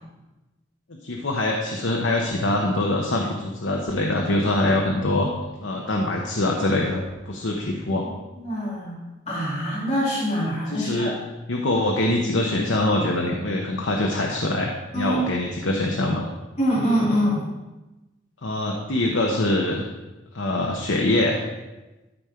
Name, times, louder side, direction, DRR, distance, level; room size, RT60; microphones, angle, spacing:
voice 1, 1.0-5.3 5.6-8.1 10.7-11.2 11.5-16.3 18.4-19.8 20.3-21.4, left 1 dB, 80° left, 0 dB, 1.0 m, -24 dB
voice 2, 8.3-9.0 9.3-11.1 14.9-15.2 16.6-17.4, equal, 35° left, -8 dB, 3.1 m, -24 dB
13.0 x 5.2 x 4.4 m, 1.1 s
head